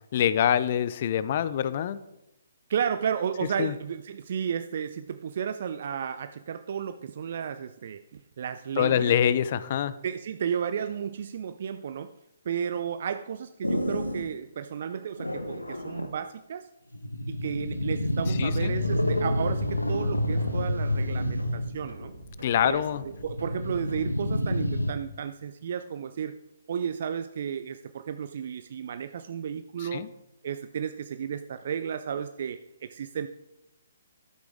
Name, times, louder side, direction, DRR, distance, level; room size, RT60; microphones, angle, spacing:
voice 1, 0.1-2.0 3.6-3.7 8.8-9.9 18.3-18.7 22.4-23.0 29.8-30.1, left 9 dB, 40° left, 15 dB, 0.5 m, -25 dB
voice 2, 2.7-9.1 10.0-12.1 12.5-16.7 17.3-22.1 22.6-22.8 23.2-26.4 26.7-30.1 30.4-33.3, right 7 dB, 50° right, 11 dB, 0.4 m, -33 dB
sound 1, 13.6-14.3 15.2-16.1 16.9-21.8 23.2-24.9, left 1 dB, 90° left, 1.1 m, -28 dB
sound 2, 19.1-24.1, right 1 dB, 80° right, 2.1 m, -45 dB
12.0 x 8.1 x 3.6 m, 0.90 s
figure-of-eight pair, 130°, 0 cm